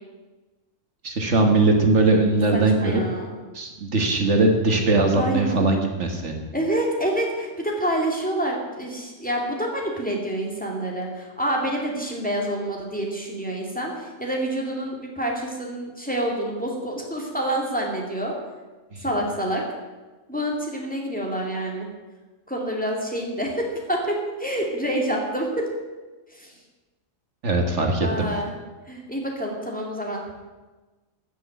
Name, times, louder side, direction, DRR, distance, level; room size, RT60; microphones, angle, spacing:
voice 1, 1.0-3.0 3.5-6.4 18.9-19.0 27.4-28.3, right 2 dB, 65° right, 3 dB, 1.8 m, -20 dB
voice 2, 2.5-3.3 5.1-5.6 6.5-18.3 19.0-19.6 20.3-21.9 22.5-25.7 26.3-26.5 28.0-28.5 28.9-30.2, right 1 dB, 5° left, -1 dB, 2.5 m, -27 dB
14.0 x 6.3 x 9.1 m, 1.2 s
omnidirectional pair, 1.3 m